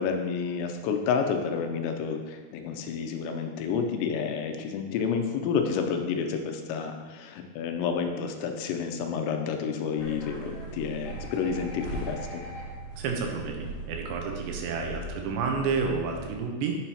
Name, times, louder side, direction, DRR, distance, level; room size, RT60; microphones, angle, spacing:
voice 1, 0.0-12.4, left 6 dB, 85° left, 5 dB, 2.8 m, -30 dB
sound 1, 10.0-16.2, right 2 dB, 35° left, 2.3 m, -39 dB
voice 2, 13.0-16.8, right 5 dB, 80° right, 2 dB, 3.1 m, -30 dB
8.9 x 6.2 x 2.8 m, 1.3 s
omnidirectional pair, 5.1 m